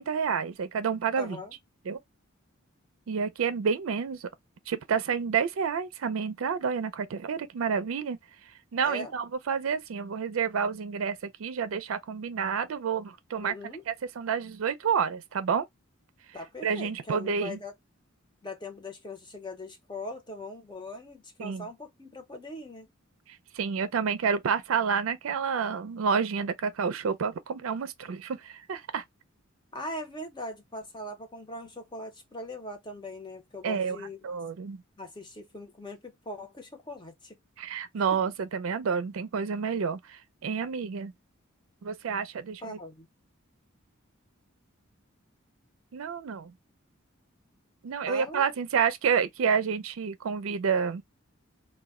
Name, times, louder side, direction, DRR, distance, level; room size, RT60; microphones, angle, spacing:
voice 1, 0.0-1.4 1.9-2.0 3.1-4.3 4.7-8.2 8.7-13.5 13.9-15.7 16.6-17.6 21.4-21.7 23.5-29.0 33.6-34.0 34.2-34.8 37.6-41.1 41.8-42.8 45.9-46.5 47.8-51.0, right 6 dB, 80° right, 0.4 m, -29 dB
voice 2, 1.2-1.5 8.8-9.1 13.4-13.8 16.3-17.7 18.4-22.9 29.7-34.2 35.0-37.4 38.1-38.2 42.6-43.1 48.1-48.4, left 1 dB, 20° left, 0.7 m, -40 dB
2.2 x 2.1 x 3.5 m
head